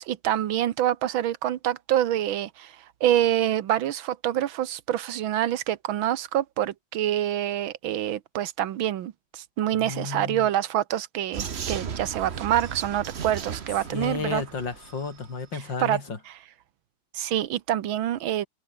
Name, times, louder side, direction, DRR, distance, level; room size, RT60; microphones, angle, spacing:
voice 1, 0.0-2.7 3.0-14.4 15.8-16.0 17.1-18.5, right 12 dB, 80° right, 1.8 m, -26 dB
voice 2, 9.7-10.5 13.9-16.2, left 4 dB, 65° left, 4.3 m, -32 dB
Vehicle, 11.3-15.3, right 7 dB, 40° right, 1.1 m, -36 dB
omnidirectional pair, 2.1 m